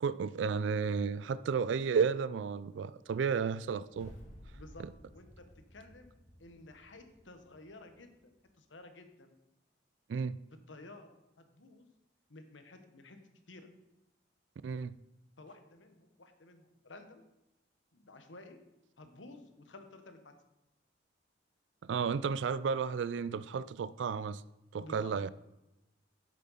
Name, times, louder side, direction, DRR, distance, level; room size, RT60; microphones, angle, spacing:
voice 1, 0.0-4.1 10.1-10.4 14.6-15.0 21.8-24.4 24.7-25.3, right 6 dB, 75° right, 0.3 m, -32 dB
sound 1, 3.9-8.2, equal, 40° left, 1.9 m, -55 dB
voice 2, 4.5-4.8 5.1-9.3 10.7-11.9 12.3-13.7 15.4-17.2 17.9-18.6 19.0-20.3 24.8-25.1, left 2 dB, 85° left, 1.2 m, -53 dB
7.5 x 7.5 x 5.6 m
head